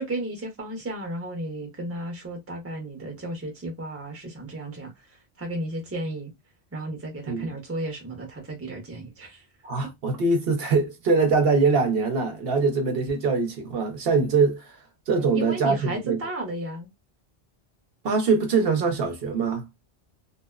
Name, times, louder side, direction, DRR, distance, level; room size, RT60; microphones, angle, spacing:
voice 1, 0.0-5.1 5.4-6.3 6.7-9.4 15.3-16.9, right 1 dB, 15° right, 0.7 m, -34 dB
voice 2, 9.6-14.7 15.1-16.2 18.0-19.6, right 4 dB, 65° right, 0.8 m, -23 dB
2.7 x 2.0 x 2.2 m
omnidirectional pair, 1.1 m